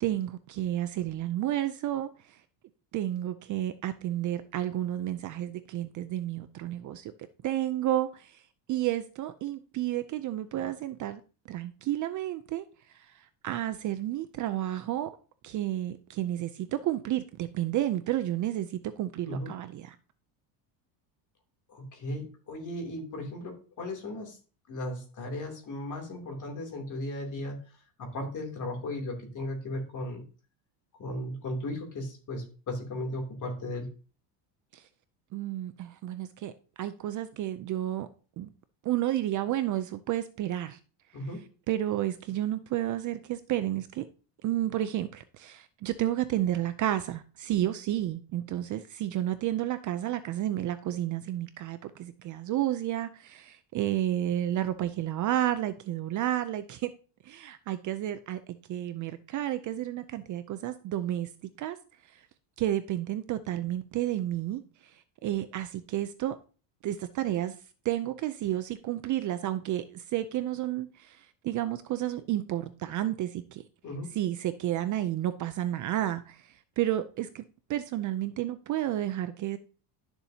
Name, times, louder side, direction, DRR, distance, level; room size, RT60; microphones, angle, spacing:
voice 1, 0.0-2.4 2.9-7.1 7.4-8.4 8.7-11.2 11.5-12.7 12.9-15.1 15.4-19.9 34.7-34.8 35.3-38.1 38.4-38.5 38.8-40.8 41.7-44.1 44.4-56.9 57.2-61.3 61.6-61.8 62.1-62.2 62.6-66.4 66.8-67.6 67.8-73.6 74.1-77.4 77.7-79.6, right 13 dB, 40° right, 0.5 m, -31 dB
voice 2, 21.7-24.4 24.7-27.6 28.0-30.2 31.0-33.9 41.1-41.4 73.8-74.1, left 1 dB, 40° left, 3.0 m, -36 dB
11.5 x 7.0 x 2.8 m
cardioid pair, 150°, 48 cm